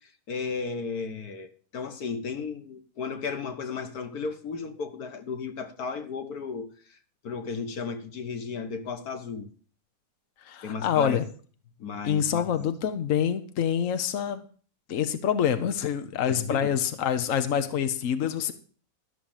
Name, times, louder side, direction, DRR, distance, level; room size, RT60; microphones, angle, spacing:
voice 1, 0.0-7.0 7.2-9.5 10.6-11.2 11.8-12.7 16.3-16.7, left 5 dB, 90° left, 1.8 m, -34 dB
voice 2, 10.5-11.2 12.0-14.4 14.9-18.5, left 8 dB, 65° left, 1.3 m, -26 dB
13.0 x 6.4 x 7.2 m
omnidirectional pair, 1.6 m